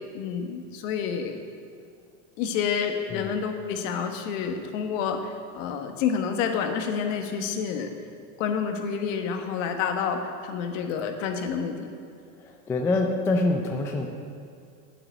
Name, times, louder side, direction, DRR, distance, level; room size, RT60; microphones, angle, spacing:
voice 1, 0.1-1.4 2.4-7.9 8.4-11.9, left 6 dB, 60° left, 5 dB, 1.5 m, -29 dB
voice 2, 3.1-3.4 12.4-14.1, left 2 dB, 5° left, 3 dB, 0.3 m, -26 dB
9.4 x 8.9 x 8.0 m, 2.3 s
supercardioid pair, 140°, 44 cm